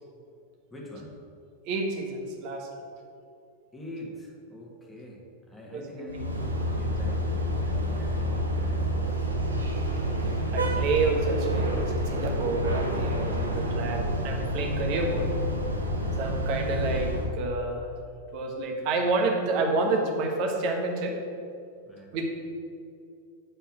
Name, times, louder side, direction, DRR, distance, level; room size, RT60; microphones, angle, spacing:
voice 1, 0.7-1.2 3.7-9.3 21.9-22.1, left 1 dB, 10° left, -3 dB, 1.7 m, -44 dB
voice 2, 1.7-2.7 5.7-6.1 10.5-15.3 16.2-17.9 18.3-21.2 22.1-22.2, right 3 dB, 45° right, 2 dB, 1.2 m, -29 dB
sound 1, 6.1-17.3, equal, 80° right, 0.9 m, -28 dB
7.9 x 4.4 x 6.1 m, 2.4 s
figure-of-eight pair, 90°, 0 cm